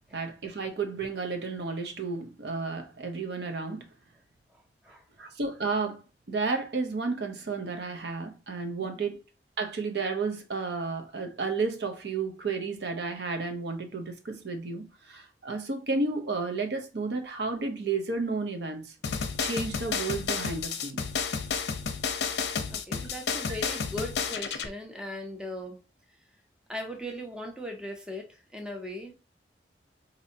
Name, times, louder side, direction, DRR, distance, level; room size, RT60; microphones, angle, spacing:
voice 1, 0.1-3.9 5.2-6.0 6.3-9.2 9.6-19.0 19.4-21.0 23.5-23.6, right 4 dB, 70° right, 0.7 m, -32 dB
voice 2, 4.5-5.3 22.7-25.8 26.7-29.1, left 1 dB, 5° right, 0.6 m, -39 dB
sound 1, 19.0-24.7, left 5 dB, 75° left, 0.6 m, -31 dB
4.2 x 2.7 x 2.7 m
head